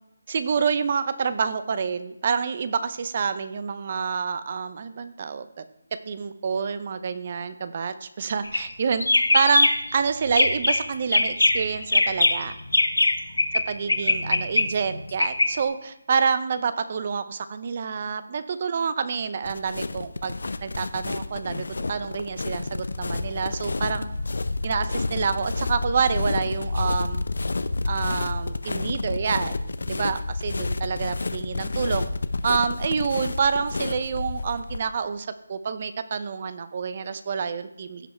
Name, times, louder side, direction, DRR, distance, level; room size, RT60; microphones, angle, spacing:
voice 1, 0.3-5.6 6.1-12.6 13.7-20.3 20.6-24.1 24.6-27.2 27.9-29.6 29.9-32.1 32.4-38.1, right 6 dB, 35° right, 12 dB, 0.7 m, -27 dB
sound 1, 8.4-8.7 9.0-9.9 10.3-10.8 11.1-13.6 13.9-15.5, left 2 dB, 90° left, 1.4 m, -21 dB
sound 2, 19.4-34.8, left 3 dB, 70° left, 0.7 m, -29 dB
16.0 x 5.5 x 4.5 m, 0.86 s
figure-of-eight pair, 165°, 0 cm